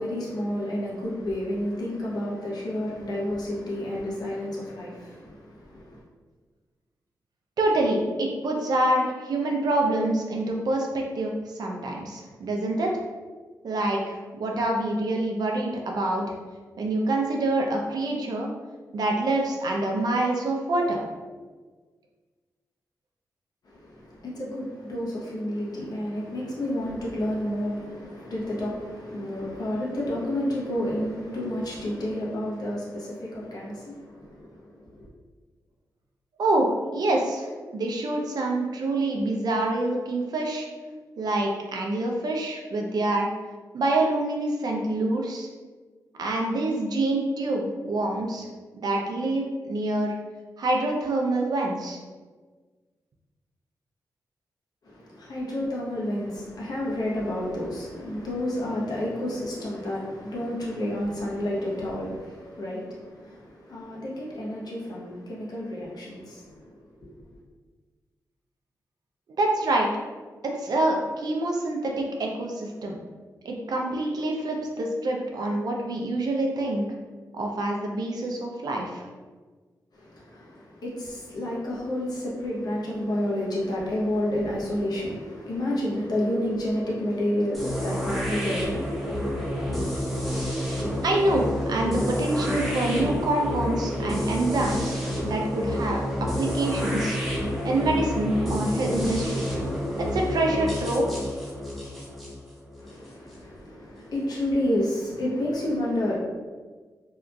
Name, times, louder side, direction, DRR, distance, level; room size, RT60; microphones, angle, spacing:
voice 1, 0.0-6.0 23.6-35.1 54.8-66.7 67.0-67.1 79.9-89.8 102.8-106.2, left 1 dB, 70° left, -5 dB, 0.8 m, -30 dB
voice 2, 7.6-12.9 13.6-16.3 16.8-18.5 18.9-21.0 36.4-40.7 41.2-43.3 43.7-45.5 46.2-48.5 48.7-50.1 50.6-52.0 69.4-69.9 70.4-73.0 73.4-76.9 77.3-79.0 91.0-97.2 97.6-99.4 100.1-101.1, right 2 dB, 70° right, 1 dB, 0.5 m, -26 dB
sound 1, 87.5-103.4, equal, ahead, 0.8 m, -29 dB
2.8 x 2.4 x 2.3 m, 1.4 s
cardioid pair, 70°, 7 cm